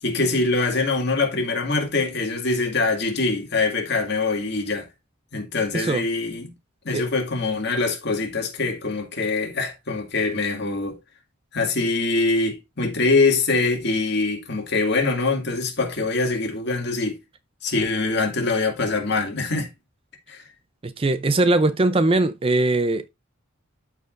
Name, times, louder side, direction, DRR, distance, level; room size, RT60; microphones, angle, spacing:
voice 1, 0.0-4.9 5.3-6.5 6.8-11.0 11.5-17.2 17.6-19.7 20.3-20.4, left 3 dB, 55° left, 2.2 m, -23 dB
voice 2, 20.8-23.1, right 2 dB, 25° right, 0.5 m, -20 dB
13.0 x 4.8 x 2.5 m
head